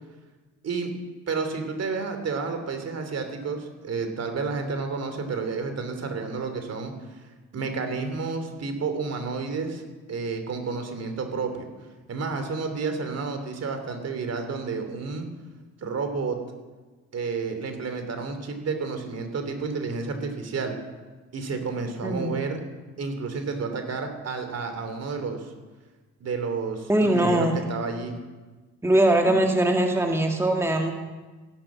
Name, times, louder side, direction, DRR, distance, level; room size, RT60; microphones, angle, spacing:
voice 1, 1.3-6.9 7.5-9.8 10.1-11.7 12.1-15.3 15.8-16.4 17.1-20.8 21.3-22.6 23.0-25.5 26.2-28.1, right 4 dB, 55° right, 6 dB, 3.1 m, -30 dB
voice 2, 26.9-27.6 28.8-30.9, right 1 dB, 10° right, 3 dB, 1.7 m, -21 dB
16.0 x 11.0 x 7.5 m, 1.3 s
cardioid pair, 90°, 30 cm